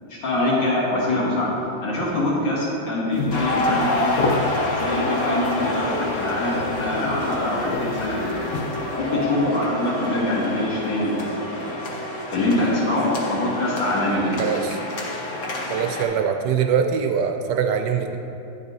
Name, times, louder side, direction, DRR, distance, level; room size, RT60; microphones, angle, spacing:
voice 1, 0.1-1.5 1.8-4.0 4.6-8.5 8.9-11.2 11.4-11.7 12.3-14.6, left 1 dB, 65° left, -7 dB, 2.7 m, -24 dB
sound 1, 3.1-9.0, left 3 dB, 90° left, 0.7 m, -31 dB
sound 2, 3.3-16.0, left 1 dB, 45° left, 1.2 m, -27 dB
voice 2, 14.4-14.8 15.7-18.2, right 7 dB, 75° right, 6 dB, 1.0 m, -23 dB
10.0 x 6.8 x 4.0 m, 2.8 s
omnidirectional pair, 2.2 m